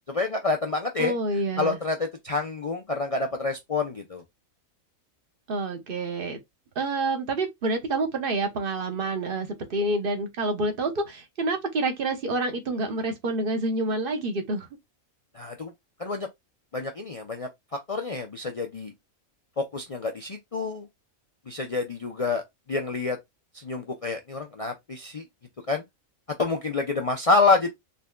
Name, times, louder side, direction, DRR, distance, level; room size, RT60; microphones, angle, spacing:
voice 1, 0.1-1.1 1.6-4.2 15.3-15.7 16.0-16.3 16.7-18.9 19.6-20.9 21.5-22.4 22.7-23.2 23.5-25.2 25.7-25.8 26.4-27.7, left 3 dB, 55° left, 0.4 m, -27 dB
voice 2, 1.0-1.8 5.5-6.4 6.7-14.7, right 2 dB, 45° right, 1.1 m, -28 dB
4.0 x 3.2 x 2.3 m
omnidirectional pair, 1.4 m